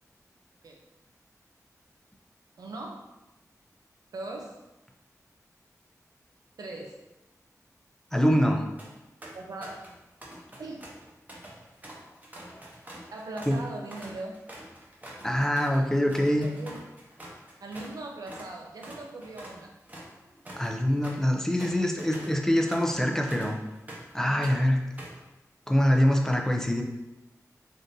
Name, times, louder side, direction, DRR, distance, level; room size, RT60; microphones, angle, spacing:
voice 1, 2.6-3.0 4.1-4.6 6.6-7.0 9.3-9.9 10.6-10.9 13.1-14.4 16.1-16.8 17.6-19.7, right 2 dB, 90° right, 1 dB, 0.5 m, -40 dB
voice 2, 8.1-8.7 13.5-13.6 15.2-16.5 20.6-23.6 24.1-24.8 25.7-26.8, equal, 10° left, 2 dB, 0.4 m, -24 dB
sound 1, 8.8-8.9 9.2-9.9 10.2-18.0 18.3-18.5 18.8-24.1 24.4-25.2, right 1 dB, 25° right, 0.8 m, -45 dB
3.6 x 2.5 x 2.7 m, 0.98 s
wide cardioid pair, 65°, 6 cm